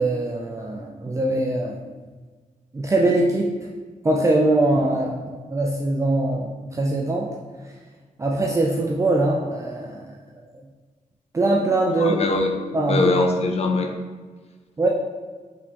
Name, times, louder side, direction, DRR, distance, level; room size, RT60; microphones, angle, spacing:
voice 1, 0.0-1.8 2.7-3.5 4.0-5.2 5.5-7.4 8.2-10.1 11.3-12.2 12.7-13.1 14.8-14.9, right 2 dB, 20° right, -2 dB, 0.4 m, -22 dB
voice 2, 11.9-12.5 12.9-13.9, left 2 dB, 50° left, 4 dB, 0.5 m, -21 dB
4.1 x 3.7 x 2.9 m, 1.4 s
wide cardioid pair, 125°, 14 cm